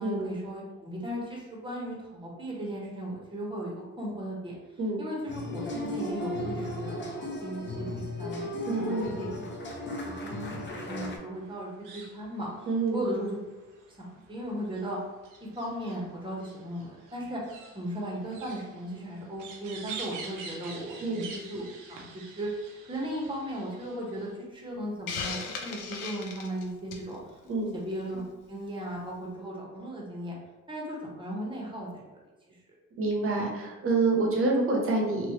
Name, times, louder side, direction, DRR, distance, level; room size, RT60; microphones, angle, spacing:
voice 1, 0.0-4.6 5.0-6.9 7.2-9.4 9.9-13.4 14.0-15.0 15.4-21.6 21.9-27.2 27.7-28.2 28.5-30.4 30.7-32.0 32.5-32.6, right 1 dB, 15° right, -3 dB, 1.0 m, -37 dB
sound 1, 5.3-11.2, left 1 dB, 40° left, 0.6 m, -35 dB
voice 2, 8.7-9.2 12.7-13.0 21.0-21.3 27.5-27.7 33.0-35.3, right 3 dB, 45° right, -1 dB, 0.9 m, -27 dB
sound 2, 11.3-24.4, right 4 dB, 90° right, 0.6 m, -47 dB
Hiss, 25.1-27.1, left 5 dB, 85° left, 0.5 m, -36 dB
3.2 x 2.3 x 2.9 m, 1.1 s
cardioid pair, 90°, 30 cm